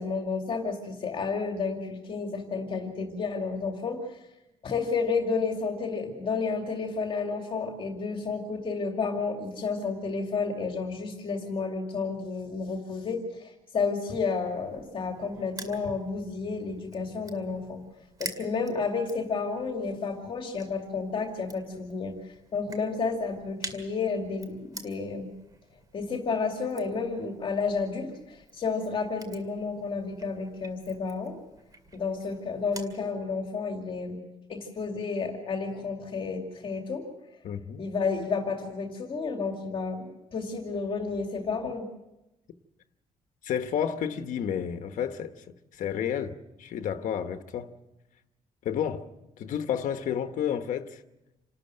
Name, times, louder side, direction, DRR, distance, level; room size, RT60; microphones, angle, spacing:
voice 1, 0.0-4.2 4.6-17.8 18.2-22.1 22.5-25.3 25.9-31.4 31.9-34.2 34.5-37.0 37.8-41.9, left 4 dB, 40° left, 2.5 m, -31 dB
Crushing, 14.4-33.0, right 3 dB, 25° right, 2.3 m, -48 dB
voice 2, 37.4-37.9 43.4-45.3 45.8-47.7 48.6-49.1 49.4-51.0, left 8 dB, 65° left, 1.1 m, -31 dB
28.0 x 13.0 x 7.8 m
cardioid pair, 180°, 14 cm